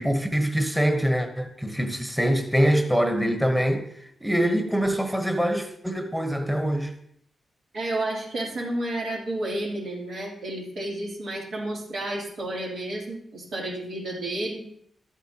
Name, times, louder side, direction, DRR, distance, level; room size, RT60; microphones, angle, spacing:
voice 1, 0.0-3.9 4.2-6.9, equal, ahead, 1.0 m, -24 dB
voice 2, 7.7-14.6, right 1 dB, 85° right, 3.2 m, -31 dB
12.5 x 8.3 x 2.9 m
cardioid pair, 80°, 0 cm